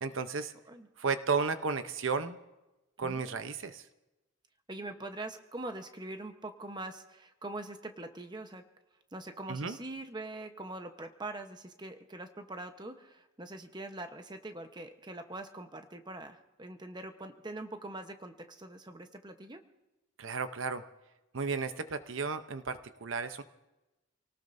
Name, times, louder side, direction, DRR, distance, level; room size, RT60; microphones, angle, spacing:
voice 1, 0.0-0.5 1.0-2.4 3.0-3.9 9.5-9.8 20.2-20.8 21.3-23.4, right 5 dB, 65° right, 10 dB, 0.8 m, -33 dB
voice 2, 4.7-8.6 9.1-19.6, right 2 dB, 20° right, 7 dB, 1.0 m, -43 dB
28.0 x 18.5 x 2.7 m, 1.0 s
head